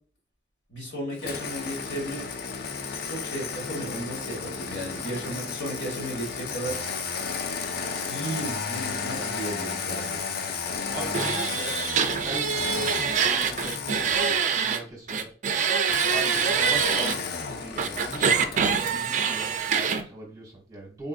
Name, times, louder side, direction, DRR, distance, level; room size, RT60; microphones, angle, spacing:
voice 1, 0.7-2.2 3.1-6.8 8.1-10.2, right 1 dB, 85° left, -1 dB, 1.6 m, -34 dB
Engine starting, 1.2-14.6 15.8-19.1, left 5 dB, 55° left, 0.4 m, -33 dB
voice 2, 10.9-11.8 12.1-15.3 16.1-21.1, right 1 dB, 20° right, -2 dB, 0.8 m, -40 dB
sound 1, 11.1-14.8 15.1-17.1 17.8-20.0, right 6 dB, 45° right, 0.3 m, -25 dB
3.7 x 2.5 x 2.4 m, 0.41 s
head